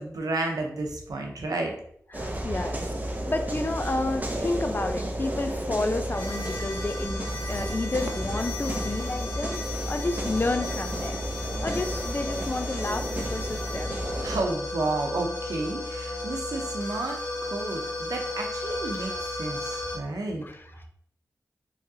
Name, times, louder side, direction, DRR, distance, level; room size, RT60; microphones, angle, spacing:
voice 1, 0.0-1.7 14.2-20.5, right 2 dB, 85° right, 2 dB, 0.7 m, -31 dB
voice 2, 2.1-11.2 11.6-14.0 20.4-20.9, left 2 dB, 35° left, 6 dB, 0.5 m, -31 dB
sound 1, 2.1-14.4, right 1 dB, 25° right, 0.7 m, -32 dB
sound 2, 6.1-20.0, left 2 dB, 50° left, 1.2 m, -35 dB
3.7 x 3.1 x 2.7 m, 0.64 s
cardioid pair, 40°, 6 cm